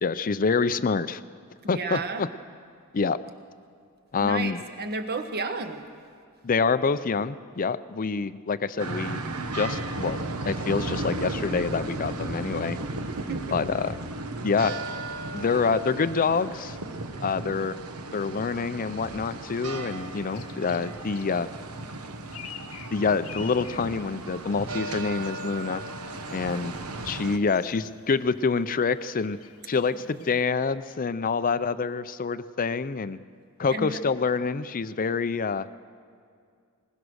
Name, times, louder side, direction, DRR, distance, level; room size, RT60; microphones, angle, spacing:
voice 1, 0.0-1.2 1.7-2.3 2.9-3.2 4.1-4.6 6.4-9.2 9.5-10.2 10.5-12.8 13.5-14.0 14.4-14.8 15.3-16.8 17.2-17.8 18.1-21.5 22.9-25.8 26.3-26.7 27.0-29.4 29.7-33.2 33.6-35.8, left 5 dB, 40° left, 14 dB, 0.5 m, -26 dB
voice 2, 1.6-2.3 4.2-5.8 13.3-13.6 14.2-14.3 33.7-34.0, right 3 dB, 45° right, 7 dB, 1.3 m, -32 dB
sound 1, 8.8-27.4, right 2 dB, 80° right, 1.2 m, -35 dB
sound 2, 20.0-30.4, left 8 dB, 75° left, 1.0 m, -49 dB
21.0 x 20.0 x 6.4 m, 2.2 s
head